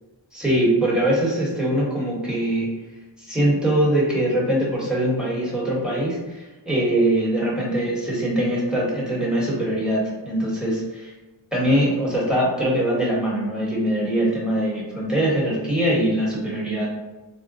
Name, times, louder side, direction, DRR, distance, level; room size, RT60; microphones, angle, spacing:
voice 1, 0.3-2.7 3.2-11.1 11.5-16.9, right 1 dB, ahead, -6 dB, 1.1 m, -22 dB
3.5 x 2.1 x 2.6 m, 1.2 s
wide cardioid pair, 65°, 46 cm